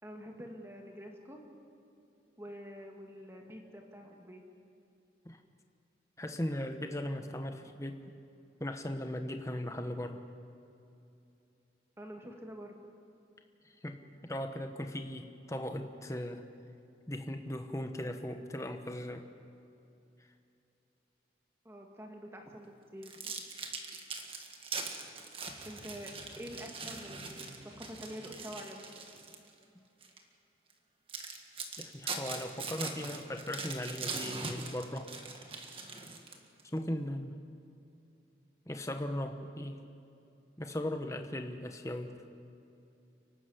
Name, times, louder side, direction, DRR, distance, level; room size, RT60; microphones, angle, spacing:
voice 1, 0.0-1.5 2.4-4.4 7.6-7.7 12.0-12.9 21.6-23.5 25.6-28.9, equal, 15° right, 1 dB, 2.1 m, -47 dB
voice 2, 6.2-8.0 8.6-10.2 13.8-16.4 17.1-19.2 31.8-35.1 36.7-37.4 38.7-39.8 40.6-42.2, left 1 dB, 15° left, 6 dB, 1.1 m, -38 dB
sound 1, 23.0-29.5 30.0-30.2 30.7-30.8 31.1-36.6, right 4 dB, 30° right, 1.8 m, -41 dB
sound 2, 25.4-28.6, right 1 dB, 70° right, 7.0 m, -54 dB
30.0 x 12.5 x 8.0 m, 2.7 s
head